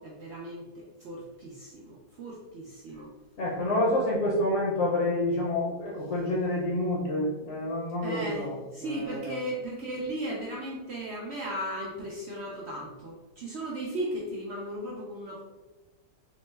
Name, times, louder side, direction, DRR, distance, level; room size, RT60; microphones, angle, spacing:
voice 1, 0.0-3.1 8.0-15.4, right 1 dB, 85° right, -3 dB, 0.5 m, -36 dB
voice 2, 3.4-8.5 8.8-9.1, left 1 dB, 55° left, -4 dB, 0.8 m, -28 dB
3.7 x 2.1 x 3.2 m, 1.2 s
omnidirectional pair, 1.7 m